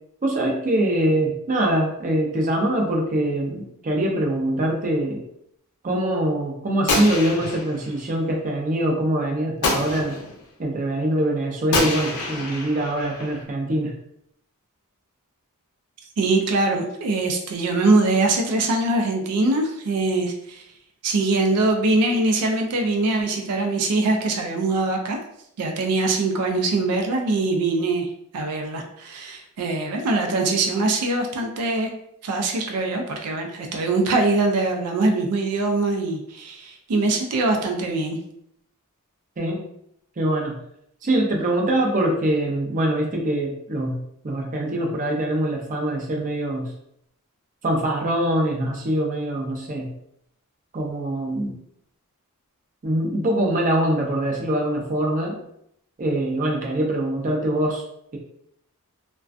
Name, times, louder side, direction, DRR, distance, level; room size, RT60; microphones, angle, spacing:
voice 1, 0.2-5.2 5.8-10.2 10.6-13.9 39.4-39.6 40.2-40.6 41.0-44.0 44.2-46.7 47.6-49.9 50.7-51.5 52.8-55.4 56.0-57.8, right 1 dB, 35° right, 0 dB, 0.5 m, -23 dB
Gunshot gunfire, 6.9-8.0 9.6-10.4 11.7-13.4, left 2 dB, 90° left, 0.5 m, -26 dB
voice 2, 16.2-20.6 21.0-25.2 25.6-28.1 28.3-31.9 32.2-38.2, right 2 dB, 90° right, 3 dB, 0.4 m, -22 dB
2.4 x 2.2 x 2.3 m, 0.73 s
head